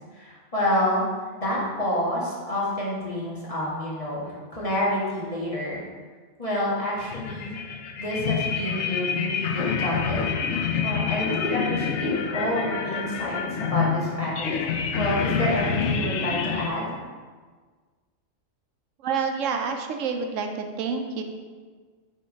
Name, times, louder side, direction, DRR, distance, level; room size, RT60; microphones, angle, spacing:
voice 1, 0.2-1.0 1.4-5.8 6.4-7.6 8.0-10.2 10.5-14.6 14.9-17.0, left 1 dB, 30° left, -6 dB, 1.5 m, -28 dB
sound 1, 7.0-16.7, left 6 dB, 70° left, 0.9 m, -27 dB
voice 2, 19.0-21.2, right 5 dB, 80° right, 5 dB, 1.0 m, -28 dB
6.3 x 3.7 x 5.0 m, 1.5 s
omnidirectional pair, 1.3 m